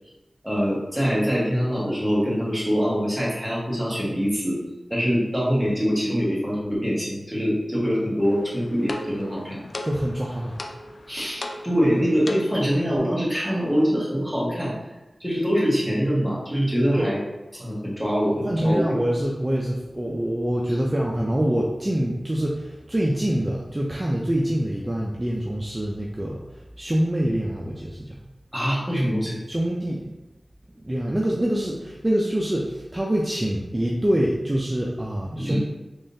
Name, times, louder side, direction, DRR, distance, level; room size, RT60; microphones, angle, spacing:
voice 1, 0.4-4.6 4.9-9.6 11.1-14.7 15.2-17.2 17.5-19.0 28.5-29.4 35.4-35.6, equal, ahead, -6 dB, 1.2 m, -24 dB
sound 1, 8.2-12.8, left 1 dB, 60° left, 0.3 m, -36 dB
voice 2, 9.8-10.6 16.9-17.1 18.4-26.4 26.8-28.2 29.5-30.1 30.8-35.6, right 1 dB, 20° right, -2 dB, 0.4 m, -25 dB
3.6 x 3.2 x 2.7 m, 1.0 s
wide cardioid pair, 75°, 0 cm